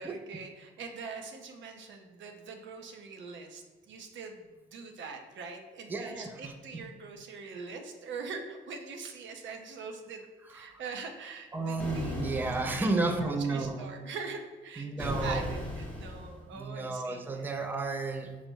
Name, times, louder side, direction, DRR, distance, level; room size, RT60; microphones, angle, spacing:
voice 1, 0.0-4.5 4.7-10.2 10.5-12.9 13.2-17.5, right 4 dB, 70° right, 5 dB, 0.6 m, -43 dB
voice 2, 5.9-6.8 10.5-10.8 11.5-13.8 14.8-15.5 16.5-18.4, right 3 dB, 10° right, 4 dB, 0.4 m, -32 dB
sound 1, 11.8-13.2 15.0-16.4, left 1 dB, 5° left, 0.8 m, -38 dB
5.5 x 2.1 x 4.4 m, 1.3 s
cardioid pair, 90°, 20 cm